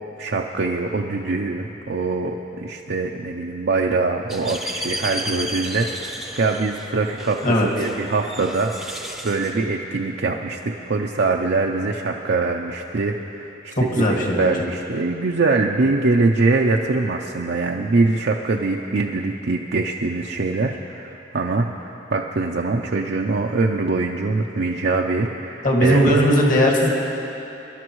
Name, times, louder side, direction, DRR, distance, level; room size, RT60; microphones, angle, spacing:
voice 1, 0.2-14.0 14.4-26.3, right 3 dB, 65° right, 0 dB, 0.5 m, -23 dB
sound 1, 4.3-9.6, equal, ahead, 0.7 m, -33 dB
voice 2, 13.8-14.5 25.6-26.9, equal, 45° left, -2 dB, 1.9 m, -18 dB
25.0 x 12.0 x 3.1 m, 3.0 s
head